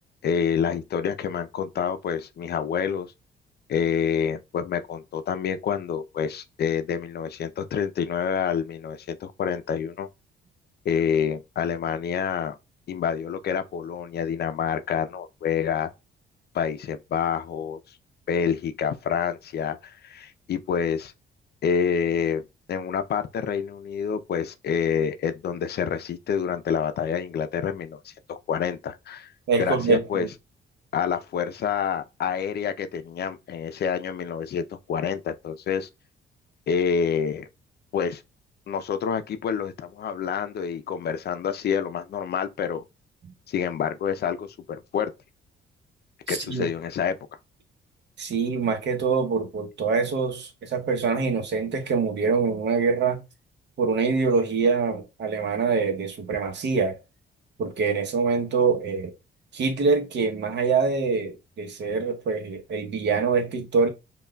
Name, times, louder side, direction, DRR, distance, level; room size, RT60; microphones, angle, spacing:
voice 1, 0.2-3.1 3.7-10.1 10.8-12.5 12.9-15.9 16.5-17.8 18.3-21.1 21.6-29.3 29.6-30.3 30.9-35.9 36.7-37.5 37.9-38.2 38.7-42.8 43.5-45.1 46.3-47.2, left 7 dB, 55° left, 0.5 m, -27 dB
voice 2, 29.5-30.3 46.3-46.7 48.2-53.2 53.8-57.0 57.6-59.1 59.5-63.9, right 4 dB, 60° right, 0.9 m, -24 dB
5.4 x 2.3 x 2.2 m
cardioid pair, 90°, 20 cm